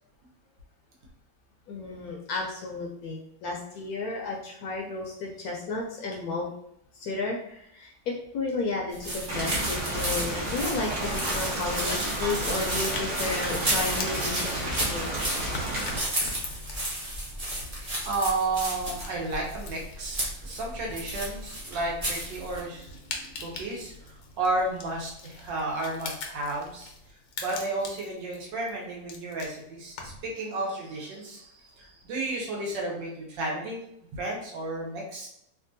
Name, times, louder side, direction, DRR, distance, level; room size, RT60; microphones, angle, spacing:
voice 1, 1.7-6.5 6.9-15.1, left 3 dB, 70° left, -1 dB, 0.9 m, -33 dB
sound 1, 8.9-22.6, right 1 dB, 35° right, 0.6 m, -33 dB
Rain, 9.3-16.0, right 1 dB, 55° right, 1.0 m, -32 dB
sound 2, 12.8-30.3, left 3 dB, 90° left, 1.3 m, -43 dB
voice 2, 17.6-26.9 27.4-33.8 34.1-35.3, right 2 dB, 85° right, -1 dB, 1.5 m, -32 dB
3.5 x 2.3 x 2.5 m, 0.74 s
omnidirectional pair, 1.9 m